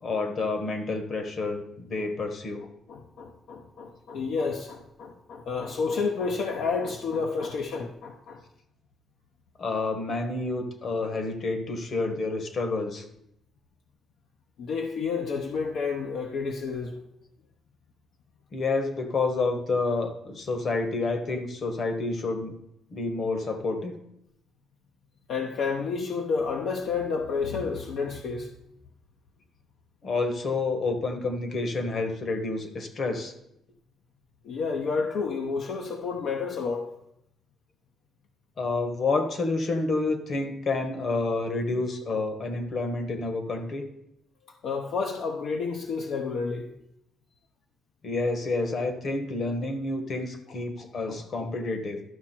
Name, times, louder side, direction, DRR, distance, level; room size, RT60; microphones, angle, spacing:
voice 1, 0.0-2.6 9.6-13.1 18.5-22.6 22.9-24.0 30.0-33.3 38.6-43.9 48.0-52.0, left 3 dB, 55° left, 7 dB, 1.4 m, -29 dB
voice 2, 2.9-8.4 14.6-17.0 25.3-28.5 34.4-36.9 44.5-46.7 50.5-51.5, left 5 dB, 75° left, 2 dB, 0.8 m, -30 dB
12.0 x 6.1 x 4.4 m, 0.80 s
cardioid pair, 90°, 0 cm